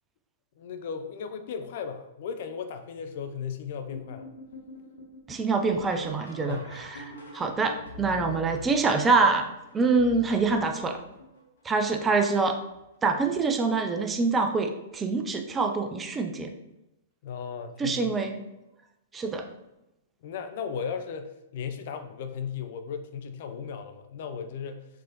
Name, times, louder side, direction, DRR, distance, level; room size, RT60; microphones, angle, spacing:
voice 1, 0.6-4.3 6.4-6.7 17.2-18.1 20.2-24.9, left 6 dB, 50° left, 8 dB, 0.4 m, -36 dB
sound 1, 3.9-11.6 12.3-12.8 13.2-13.9 15.1-15.2 16.0-16.3 18.5-18.6 20.9-21.0, left 3 dB, 70° left, 0.9 m, -46 dB
voice 2, 5.3-7.0 7.3-11.0 11.6-12.6 13.0-16.5 17.8-18.4 19.1-19.4, right 4 dB, 15° right, 5 dB, 0.5 m, -25 dB
4.6 x 3.8 x 3.0 m, 0.91 s
figure-of-eight pair, 105°, 0 cm